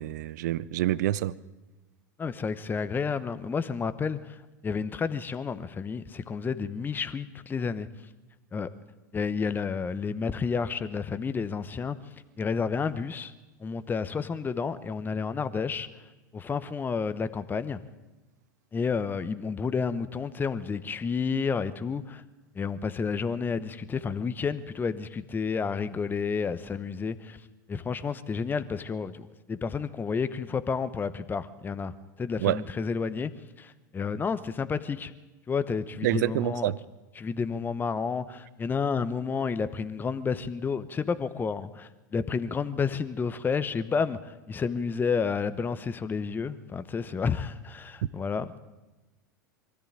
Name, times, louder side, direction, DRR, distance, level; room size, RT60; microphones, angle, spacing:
voice 1, 0.0-1.4 32.4-32.6 36.0-36.8, right 14 dB, 65° right, 0.7 m, -27 dB
voice 2, 2.2-7.9 8.5-8.7 9.1-12.0 12.4-13.3 13.6-15.9 16.3-17.8 18.7-22.2 22.5-27.4 27.7-33.3 33.6-35.1 35.5-36.7 37.2-48.5, left 5 dB, 20° left, 1.0 m, -30 dB
23.0 x 14.0 x 8.9 m
hypercardioid pair, 90°, 10 cm